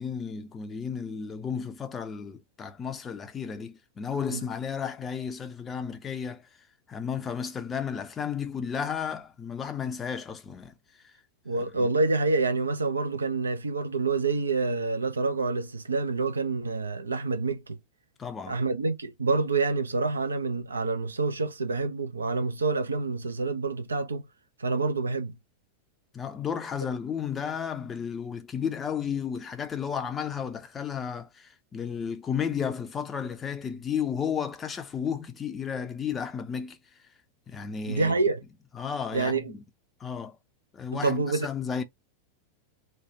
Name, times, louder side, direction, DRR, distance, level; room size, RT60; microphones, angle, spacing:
voice 1, 0.0-6.5 6.9-11.1 11.8-11.9 18.2-18.6 26.1-37.0 37.5-38.1 38.7-39.6 40.0-40.4 40.7-41.8, left 7 dB, 20° left, 0.5 m, -33 dB
voice 2, 11.5-17.8 18.5-24.2 24.6-25.3 37.9-38.4 39.1-39.5 40.9-41.5, right 3 dB, 75° right, 0.5 m, -27 dB
3.2 x 2.2 x 3.9 m
figure-of-eight pair, 90°, 0 cm